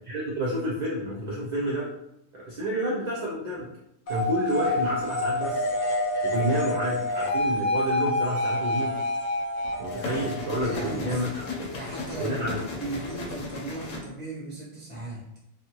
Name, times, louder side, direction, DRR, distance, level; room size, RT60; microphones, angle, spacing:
voice 1, 0.1-1.9 2.3-3.7 4.1-5.7 6.2-9.0 9.8-11.3 12.2-12.6, equal, 60° right, -5 dB, 0.4 m, -29 dB
sound 1, 4.1-11.6, left 1 dB, 50° left, 0.6 m, -28 dB
sound 2, 4.5-5.1 7.0-7.8 9.6-14.0, left 3 dB, 70° left, 1.0 m, -36 dB
voice 2, 10.6-11.2 11.7-15.2, right 2 dB, 10° right, -5 dB, 0.5 m, -37 dB
2.6 x 2.4 x 2.9 m, 0.81 s
omnidirectional pair, 1.5 m